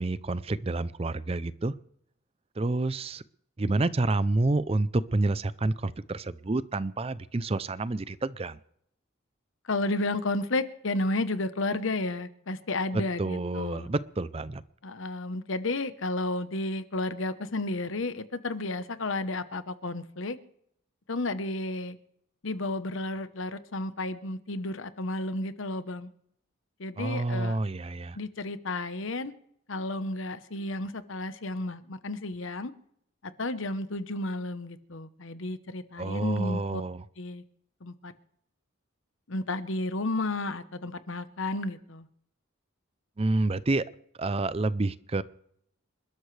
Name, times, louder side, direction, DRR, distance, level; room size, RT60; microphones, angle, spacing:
voice 1, 0.0-1.7 2.6-3.2 3.6-8.6 13.2-14.6 27.0-28.2 36.0-37.0 43.2-43.8 44.2-45.2, right 2 dB, 30° right, 16 dB, 0.5 m, -28 dB
voice 2, 9.7-13.9 14.8-20.4 21.1-22.0 22.4-26.1 26.8-27.6 28.1-29.3 29.7-32.7 33.4-36.8 37.2-37.4 37.8-38.1 39.3-42.1, left 2 dB, 65° left, 12 dB, 1.0 m, -32 dB
28.0 x 12.5 x 3.3 m, 0.71 s
head